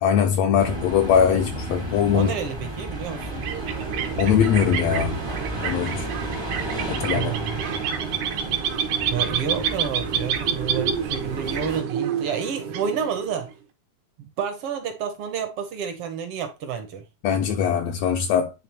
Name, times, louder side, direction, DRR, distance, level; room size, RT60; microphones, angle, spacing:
voice 1, 0.0-2.3 4.2-5.2 5.6-6.1 6.9-7.3 17.2-18.5, left 8 dB, 75° left, 1.7 m, -21 dB
sound 1, 0.6-11.8, right 1 dB, 30° right, 0.4 m, -33 dB
voice 2, 2.1-3.4 7.1-7.6 9.1-13.5 14.2-17.0, right 7 dB, 70° right, 1.5 m, -29 dB
sound 2, 3.1-13.5, right 8 dB, 85° right, 2.6 m, -28 dB
10.5 x 3.6 x 2.9 m
omnidirectional pair, 3.5 m